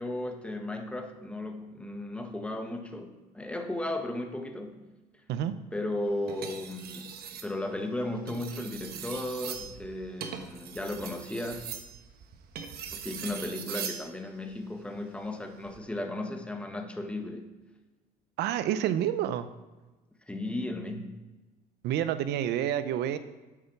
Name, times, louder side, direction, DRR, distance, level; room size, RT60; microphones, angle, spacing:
voice 1, 0.0-4.9 5.7-7.1 7.4-11.7 12.9-17.5 20.3-21.2, left 1 dB, 5° left, 4 dB, 1.4 m, -35 dB
sound 1, 6.3-7.5 8.2-14.1 15.5-15.8, right 7 dB, 65° right, 1.3 m, -40 dB
voice 2, 18.4-19.5 21.8-23.2, right 10 dB, 85° right, 13 dB, 0.8 m, -28 dB
8.7 x 8.6 x 6.0 m, 1.2 s
cardioid pair, 110°, 17 cm